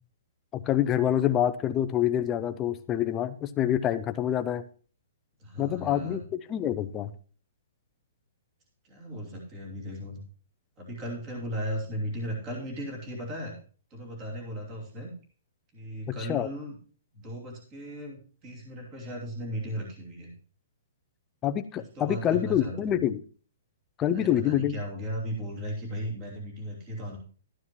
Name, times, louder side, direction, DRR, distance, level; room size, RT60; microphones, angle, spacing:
voice 1, 0.5-4.6 5.6-7.1 16.1-16.5 21.4-23.2 24.0-24.8, left 11 dB, 15° left, 9 dB, 0.5 m, -26 dB
voice 2, 5.4-6.2 8.8-10.2 10.8-13.5 13.9-15.1 15.7-16.8 17.1-20.3 21.7-23.1 24.1-27.2, equal, 20° right, -1 dB, 2.8 m, -36 dB
12.5 x 9.5 x 3.0 m, 0.41 s
hypercardioid pair, 175°, 0 cm